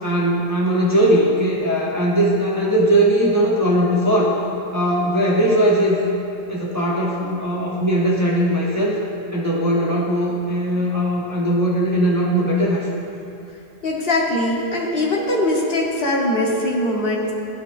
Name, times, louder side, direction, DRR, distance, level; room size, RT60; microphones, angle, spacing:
voice 1, 0.0-4.4 4.7-6.1 6.5-9.0 9.3-12.9, right 1 dB, 15° right, -5 dB, 0.7 m, -19 dB
voice 2, 13.8-17.3, left 1 dB, 60° left, -3 dB, 1.1 m, -21 dB
12.0 x 4.5 x 2.4 m, 2.7 s
omnidirectional pair, 1.1 m